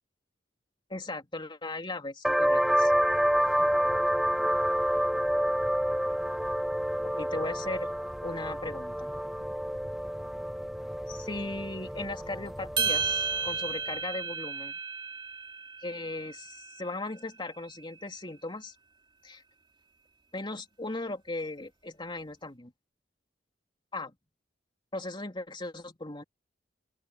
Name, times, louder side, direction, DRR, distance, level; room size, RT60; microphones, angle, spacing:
voice 1, 0.9-2.9 7.0-7.9 8.2-9.1 11.1-14.8 15.8-18.7 19.2-19.4 20.3-22.7 23.9-24.1 24.9-26.2, left 2 dB, 25° left, 3.2 m, -37 dB
sound 1, 2.2-13.5, equal, ahead, 0.4 m, -29 dB
sound 2, 12.8-17.2, right 5 dB, 25° right, 3.1 m, -33 dB
open air
head